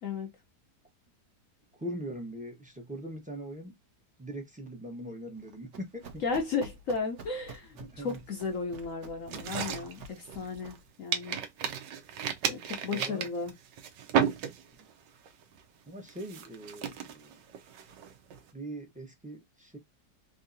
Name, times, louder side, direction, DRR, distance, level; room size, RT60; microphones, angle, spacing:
voice 1, 1.8-3.8 4.2-6.2 7.7-8.2 12.9-13.3 14.8-14.9 15.9-17.4 18.5-19.8, right 1 dB, 10° right, 0.5 m, -41 dB
Run, 5.4-10.9, right 3 dB, 55° right, 0.9 m, -49 dB
voice 2, 6.2-11.4 12.4-13.5, left 4 dB, 65° left, 0.8 m, -34 dB
sound 1, 9.3-10.8 11.1-14.9 15.3-15.6 16.1-18.4, right 8 dB, 80° right, 1.3 m, -33 dB
3.6 x 2.8 x 2.6 m
omnidirectional pair, 1.9 m